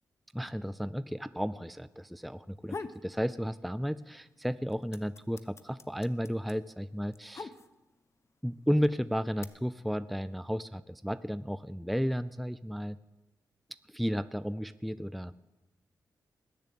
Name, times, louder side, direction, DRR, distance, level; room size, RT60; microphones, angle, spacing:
voice 1, 0.3-2.8 3.0-7.5 8.4-13.0 13.9-15.3, equal, ahead, 14 dB, 0.4 m, -33 dB
sound 1, 2.4-3.1 3.5-4.2 4.4-8.0 8.8-9.4, left 4 dB, 40° left, 0.9 m, -43 dB
20.5 x 6.9 x 8.6 m, 1.0 s
cardioid pair, 70°, 7 cm